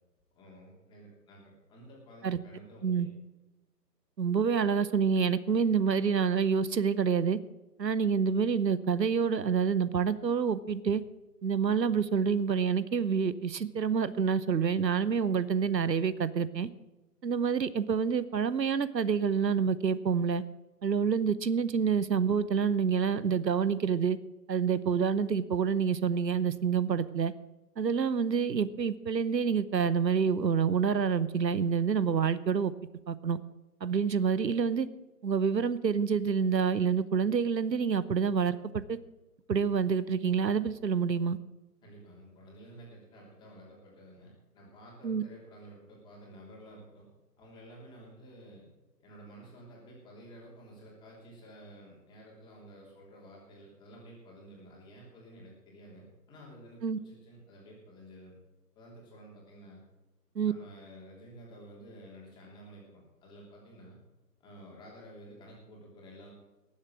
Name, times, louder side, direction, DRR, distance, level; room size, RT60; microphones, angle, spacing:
voice 1, 0.3-3.1 41.8-47.1 47.4-48.7 49.0-58.3 58.7-59.8 60.5-64.0 64.4-66.3, right 1 dB, 10° left, -3 dB, 3.0 m, -52 dB
voice 2, 4.2-7.4 7.8-11.0 11.4-16.7 17.2-20.4 20.8-24.2 24.5-27.3 27.8-32.7 33.1-33.4 33.8-34.9 35.2-39.0 39.5-41.4 45.0-45.2 56.8-57.0 60.4-60.5, right 6 dB, 90° right, 16 dB, 1.0 m, -27 dB
19.0 x 7.4 x 6.1 m, 1.0 s
hypercardioid pair, 155°, 49 cm